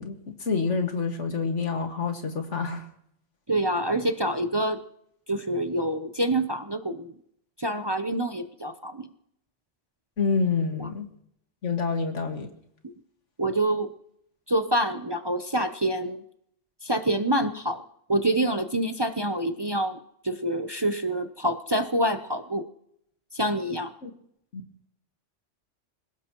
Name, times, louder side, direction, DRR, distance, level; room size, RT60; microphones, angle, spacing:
voice 1, 0.0-2.9 10.2-11.1 11.6-12.5 24.0-24.1 24.5-24.6, left 5 dB, 80° left, 4 dB, 2.2 m, -27 dB
voice 2, 3.5-4.8 5.3-7.1 7.6-9.1 10.8-10.9 12.8-12.9 13.4-13.9 14.5-16.2 16.8-17.8 18.1-20.0 20.2-22.6 23.3-23.9, right 1 dB, 25° right, 7 dB, 0.7 m, -26 dB
27.0 x 17.0 x 3.0 m, 0.73 s
omnidirectional pair, 1.2 m